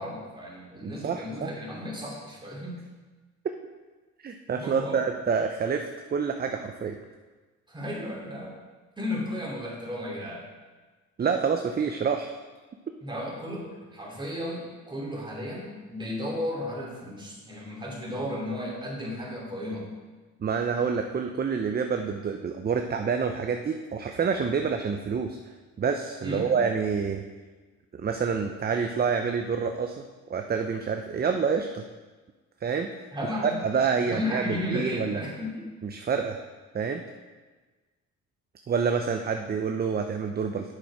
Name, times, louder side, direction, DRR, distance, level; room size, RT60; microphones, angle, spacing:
voice 1, 0.0-2.8 4.5-5.0 7.7-8.6 9.0-10.5 13.0-19.9 26.2-26.6 33.1-33.6 34.0-35.7, left 1 dB, 15° right, -3 dB, 2.7 m, -34 dB
voice 2, 0.8-1.5 4.2-7.0 11.2-12.3 20.4-25.4 25.8-27.2 28.0-29.9 30.3-31.8 32.6-32.9 33.6-35.2 35.8-36.4 36.7-37.0 38.7-40.7, right 6 dB, 30° right, 5 dB, 0.6 m, -27 dB
8.9 x 6.4 x 4.7 m, 1.3 s
cardioid pair, 90°, 30 cm